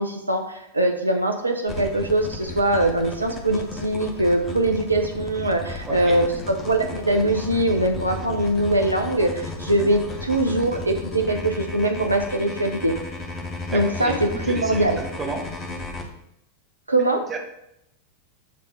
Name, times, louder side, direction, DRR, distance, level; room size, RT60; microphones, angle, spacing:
voice 1, 0.0-12.9 13.7-15.0 16.9-17.2, right 1 dB, 85° right, 4 dB, 0.6 m, -22 dB
sound 1, 1.7-16.0, left 2 dB, 20° left, 1.0 m, -34 dB
voice 2, 5.9-6.2 13.7-15.4 17.3-17.4, right 3 dB, 20° right, 3 dB, 1.0 m, -32 dB
7.5 x 3.4 x 4.4 m, 0.80 s
figure-of-eight pair, 90°, 0 cm